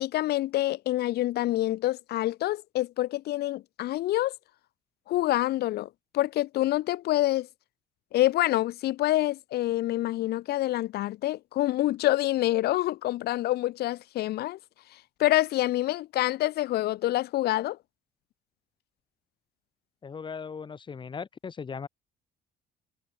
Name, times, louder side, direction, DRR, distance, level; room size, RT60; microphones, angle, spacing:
voice 1, 0.0-4.3 5.1-7.5 8.1-14.6 14.9-17.8, left 15 dB, 70° left, 1.1 m, -27 dB
voice 2, 20.0-21.9, left 6 dB, 30° left, 1.1 m, -38 dB
cardioid pair, 110°, 17 cm